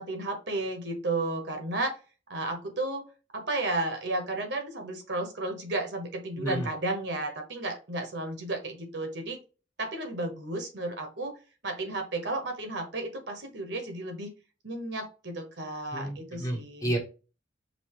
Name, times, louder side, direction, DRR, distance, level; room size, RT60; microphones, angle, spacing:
voice 1, 0.0-2.0 2.3-3.0 3.3-9.4 9.8-11.3 11.6-14.3 14.6-16.9, right 2 dB, 60° right, 4 dB, 1.2 m, -33 dB
voice 2, 15.9-17.0, right 1 dB, 15° left, 1 dB, 1.0 m, -31 dB
5.3 x 2.7 x 3.0 m, 0.33 s
head